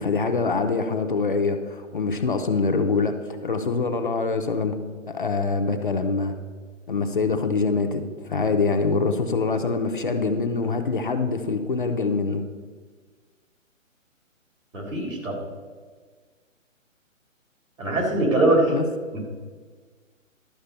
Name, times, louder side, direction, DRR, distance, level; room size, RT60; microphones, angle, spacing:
voice 1, 0.0-4.7 5.1-6.4 6.9-12.4 18.7-18.9, left 4 dB, 40° left, 6 dB, 0.6 m, -24 dB
voice 2, 14.7-15.4 17.8-18.7, right 2 dB, 70° right, 1 dB, 3.6 m, -22 dB
12.0 x 5.1 x 6.6 m, 1.5 s
hypercardioid pair, 170°, 40 cm